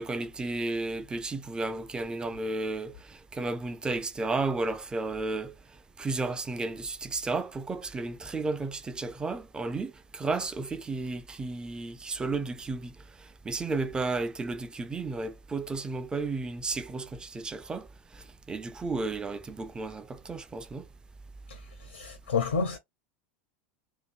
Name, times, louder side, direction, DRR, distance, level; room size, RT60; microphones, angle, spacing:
voice 1, 0.0-5.5 6.0-13.0 13.4-17.9 18.1-20.9, right 3 dB, 15° right, 0.5 m, -33 dB
voice 2, 21.5-22.8, left 5 dB, 75° left, 0.7 m, -30 dB
2.8 x 2.6 x 4.2 m
figure-of-eight pair, 80°, 6 cm